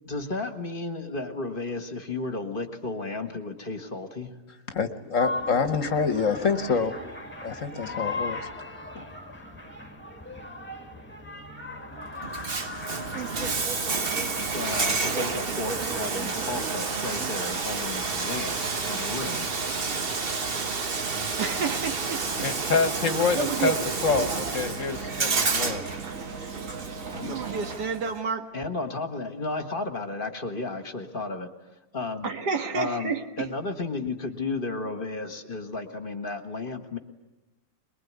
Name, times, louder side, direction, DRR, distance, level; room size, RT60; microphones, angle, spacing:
voice 1, 0.1-4.3 14.5-19.5 27.1-27.4 28.5-31.5 31.9-32.3 32.7-37.0, left 3 dB, 35° left, 8 dB, 1.6 m, -33 dB
voice 2, 4.7-7.0 7.4-8.4 8.9-9.0 22.4-23.7 24.0-25.8, left 5 dB, 55° left, 10 dB, 1.5 m, -26 dB
sound 1, 5.2-16.7, left 2 dB, 5° left, 1.9 m, -38 dB
Bathtub (filling or washing), 12.2-28.2, right 4 dB, 40° right, 1.3 m, -30 dB
sound 2, 13.0-27.8, right 4 dB, 55° right, 1.8 m, -39 dB
voice 3, 21.4-22.5 23.3-23.7 24.2-24.3 27.2-28.5 32.2-33.5, right 5 dB, 85° right, 5 dB, 2.2 m, -30 dB
23.0 x 22.0 x 9.6 m, 1.0 s
omnidirectional pair, 1.7 m